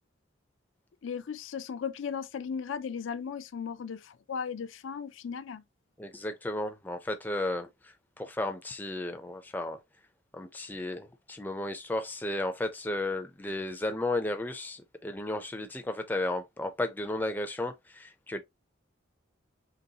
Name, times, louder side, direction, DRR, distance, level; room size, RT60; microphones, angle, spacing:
voice 1, 1.0-5.6, left 6 dB, 85° left, 0.4 m, -36 dB
voice 2, 6.0-9.8 10.3-18.4, left 1 dB, 10° left, 0.4 m, -34 dB
4.0 x 3.1 x 2.8 m
head